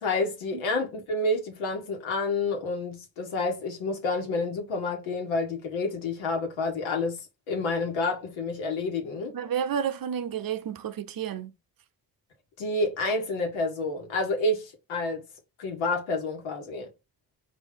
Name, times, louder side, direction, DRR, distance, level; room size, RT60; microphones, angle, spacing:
voice 1, 0.0-7.2 7.5-9.3 12.6-15.2 15.6-16.9, left 2 dB, 85° left, 1.6 m, -29 dB
voice 2, 9.3-11.5, right 8 dB, 50° right, 0.8 m, -31 dB
4.0 x 2.7 x 3.7 m
supercardioid pair, 55°, 45 cm